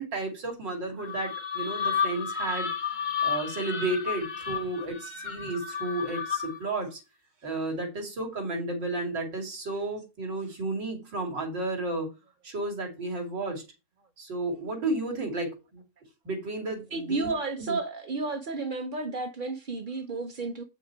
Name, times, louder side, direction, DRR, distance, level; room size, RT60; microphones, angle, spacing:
voice 1, 0.0-2.7 3.2-7.0 7.4-12.1 12.4-13.6 14.2-15.8 16.2-17.3 17.6-17.8, right 2 dB, 65° right, 3.4 m, -32 dB
sound 1, 1.0-6.7, left 7 dB, 50° left, 0.5 m, -32 dB
voice 2, 16.9-20.6, right 3 dB, 45° right, 0.7 m, -32 dB
8.6 x 5.9 x 4.6 m
omnidirectional pair, 2.1 m